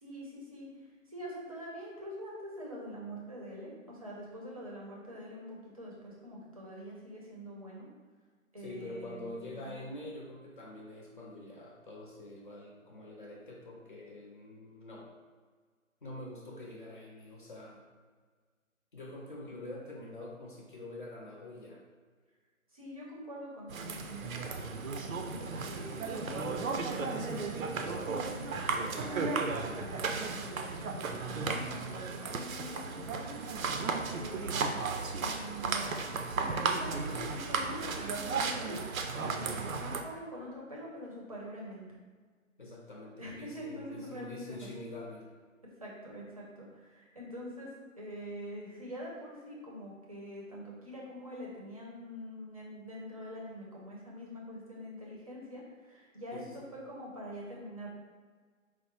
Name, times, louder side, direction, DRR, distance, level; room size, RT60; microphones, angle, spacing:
voice 1, 0.0-7.9 8.5-9.7 22.7-26.5 26.8-34.8 35.1-38.8 39.3-41.9 43.2-44.7 45.8-57.9, equal, 25° right, -4 dB, 0.6 m, -45 dB
voice 2, 8.6-15.1 16.0-17.9 18.9-21.8 33.8-34.3 42.6-45.3 56.3-56.5, left 1 dB, 40° left, -2 dB, 0.7 m, -45 dB
sound 1, 23.7-40.0, right 4 dB, 75° right, 0.6 m, -35 dB
4.7 x 2.1 x 4.2 m, 1.5 s
hypercardioid pair, 165°, 41 cm